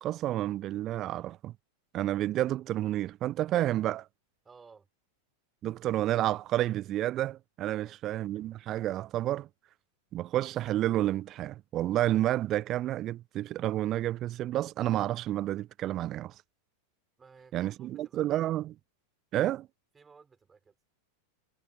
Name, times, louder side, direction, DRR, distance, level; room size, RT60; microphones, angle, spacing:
voice 1, 0.0-1.5 1.9-4.1 5.6-9.5 10.1-16.3 17.5-18.7 19.3-19.7, right 13 dB, 35° right, 0.4 m, -30 dB
voice 2, 4.4-4.9 7.7-8.0 17.2-18.5 19.9-20.8, right 5 dB, 15° right, 5.4 m, -57 dB
figure-of-eight pair, 90°, 0 cm